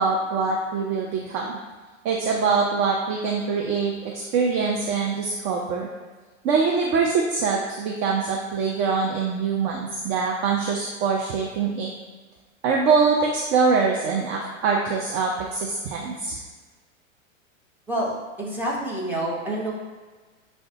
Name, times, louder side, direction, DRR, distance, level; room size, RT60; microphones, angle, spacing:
voice 1, 0.0-1.6 2.0-5.9 6.4-11.9 12.6-16.4, right 5 dB, 30° right, -1 dB, 0.4 m, -24 dB
voice 2, 17.9-19.7, right 1 dB, 5° right, -5 dB, 0.9 m, -28 dB
6.4 x 2.2 x 2.7 m, 1.4 s
hypercardioid pair, 105°, 40 cm